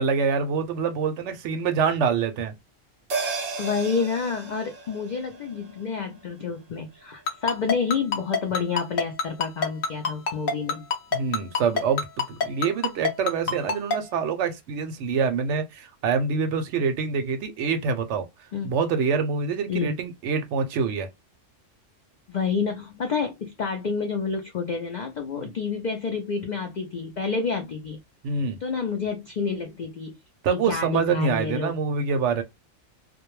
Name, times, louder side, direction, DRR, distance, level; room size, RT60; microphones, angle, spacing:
voice 1, 0.0-2.5 11.1-18.3 18.6-21.1 25.4-25.5 28.2-28.6 30.4-32.4, right 5 dB, 70° right, 0.8 m, -25 dB
sound 1, 3.1-7.8 8.1-8.2, right 4 dB, 50° right, 0.4 m, -36 dB
voice 2, 3.6-10.9 18.5-18.7 19.7-19.9 22.3-28.0 28.6-30.2 30.5-31.7, left 5 dB, 75° left, 0.4 m, -29 dB
Ringtone, 7.3-14.0, left 5 dB, 55° left, 0.7 m, -24 dB
2.2 x 2.2 x 3.0 m
omnidirectional pair, 1.3 m